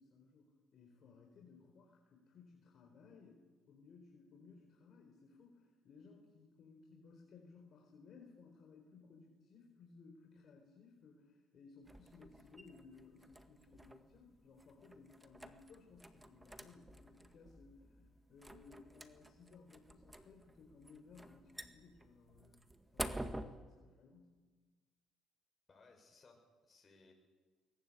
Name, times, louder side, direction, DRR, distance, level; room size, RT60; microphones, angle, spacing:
voice 1, 0.0-22.6 22.9-24.4, left 4 dB, 55° left, 1 dB, 4.4 m, -61 dB
sound 1, 11.8-23.5, right 1 dB, 10° right, 1.8 m, -50 dB
voice 2, 25.7-27.1, left 3 dB, 30° left, 2 dB, 7.3 m, -64 dB
22.0 x 20.0 x 8.7 m, 1.4 s
supercardioid pair, 90°, 0 cm